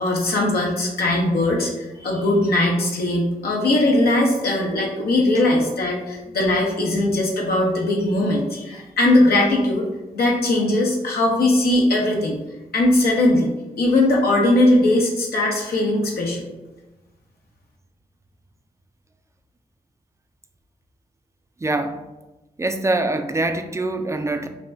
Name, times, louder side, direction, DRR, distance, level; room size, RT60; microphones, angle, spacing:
voice 1, 0.0-9.9 10.1-12.4 12.7-13.5 13.8-16.5, left 1 dB, 80° left, -2 dB, 0.8 m, -19 dB
voice 2, 21.6-22.0 22.6-24.5, right 2 dB, 20° right, 7 dB, 0.4 m, -24 dB
5.7 x 2.2 x 2.6 m, 1.1 s
cardioid pair, 65°, 16 cm